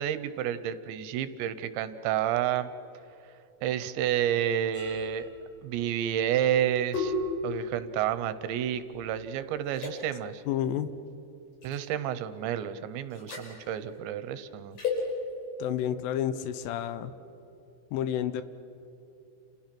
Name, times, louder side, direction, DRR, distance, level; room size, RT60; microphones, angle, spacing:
voice 1, 0.0-2.7 3.6-5.3 5.6-7.1 7.4-10.4 11.6-14.8, right 10 dB, 75° right, 13 dB, 2.9 m, -30 dB
sound 1, 4.7-9.3 9.7-9.9 11.6-11.9 13.1-13.5 14.8-15.0, left 3 dB, 45° left, 6.9 m, -35 dB
voice 2, 10.5-10.9 15.6-17.1 17.9-18.4, left 10 dB, 80° left, 12 dB, 3.4 m, -30 dB
29.5 x 29.0 x 6.0 m, 2.9 s
omnidirectional pair, 5.7 m